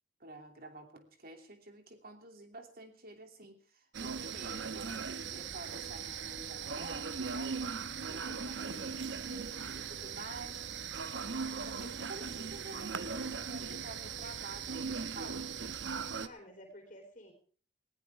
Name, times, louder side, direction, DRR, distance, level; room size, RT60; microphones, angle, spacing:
voice 1, 0.2-7.6 8.1-10.6 11.2-15.5, right 2 dB, 55° right, 5 dB, 2.8 m, -50 dB
sound 1, 3.9-16.3, right 5 dB, 80° right, 1.0 m, -39 dB
voice 2, 8.3-9.4 16.2-17.3, equal, 45° left, 2 dB, 3.7 m, -53 dB
19.5 x 16.5 x 3.6 m, 0.42 s
head